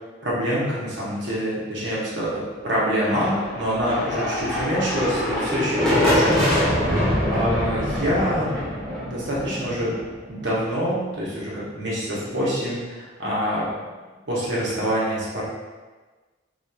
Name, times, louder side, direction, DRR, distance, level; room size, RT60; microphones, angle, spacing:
voice 1, 0.2-7.0 7.3-8.5 8.8-9.9 10.3-13.7 14.3-15.5, equal, 60° right, -7 dB, 0.8 m, -26 dB
sound 1, 2.9-10.6, left 1 dB, 5° left, 0.4 m, -24 dB
sound 2, 6.4-8.0, right 2 dB, 80° right, 0.4 m, -34 dB
2.8 x 2.2 x 2.2 m, 1.3 s
head